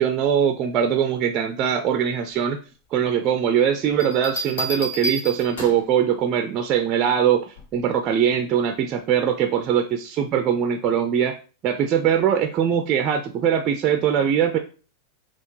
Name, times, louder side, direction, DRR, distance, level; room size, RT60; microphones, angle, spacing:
voice 1, 0.0-2.6 2.9-11.4 11.6-14.6, right 8 dB, 35° right, 6 dB, 0.5 m, -21 dB
Bell, 4.0-6.0 7.6-7.9, right 1 dB, 60° left, 1.5 m, -30 dB
5.5 x 2.5 x 3.0 m, 0.37 s
figure-of-eight pair, 90°, 0 cm